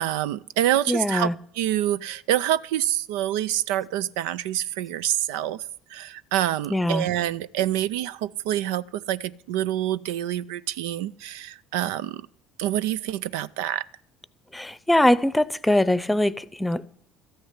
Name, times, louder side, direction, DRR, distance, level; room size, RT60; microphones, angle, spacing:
voice 1, 0.0-5.6 5.9-12.3 12.6-13.9, right 12 dB, 80° right, 0.4 m, -27 dB
voice 2, 0.9-1.3 6.7-7.1 14.5-16.8, left 1 dB, 10° left, 0.7 m, -22 dB
13.5 x 6.3 x 9.5 m
supercardioid pair, 75°, 0 cm